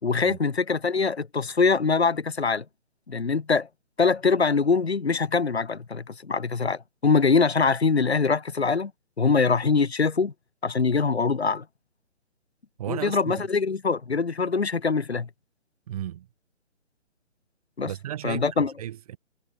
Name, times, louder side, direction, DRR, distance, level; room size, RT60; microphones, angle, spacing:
voice 1, 0.0-2.7 3.1-3.7 4.0-8.9 9.2-10.3 10.6-11.6 12.9-15.3 17.8-17.9 18.2-18.7, left 4 dB, 60° left, 5.3 m, -23 dB
voice 2, 12.8-13.4 15.9-16.3 17.8-18.5 18.8-19.2, right 12 dB, 30° right, 4.4 m, -34 dB
figure-of-eight pair, 140°, 37 cm